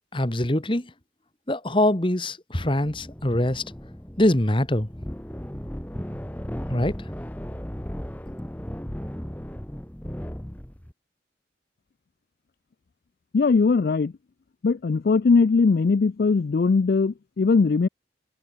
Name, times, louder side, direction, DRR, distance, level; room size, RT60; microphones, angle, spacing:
voice 1, 0.1-0.9 1.5-3.6 4.2-4.9 6.7-7.0, left 1 dB, 25° left, 1.7 m, -23 dB
sound 1, 2.6-10.9, equal, 10° left, 1.0 m, -36 dB
voice 2, 13.3-14.1 14.6-17.9, left 4 dB, 55° left, 0.4 m, -20 dB
head